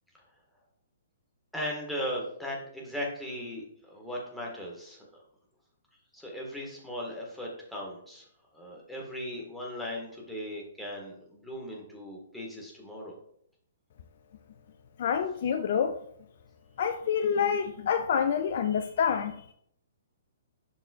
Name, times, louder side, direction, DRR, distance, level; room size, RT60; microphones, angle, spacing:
voice 1, 1.5-5.0 6.1-8.2 8.5-13.1, equal, 5° left, 1.6 m, -38 dB
voice 2, 15.0-16.0 16.8-19.5, left 7 dB, 45° left, 0.4 m, -27 dB
7.4 x 5.9 x 2.4 m
figure-of-eight pair, 120°, 0 cm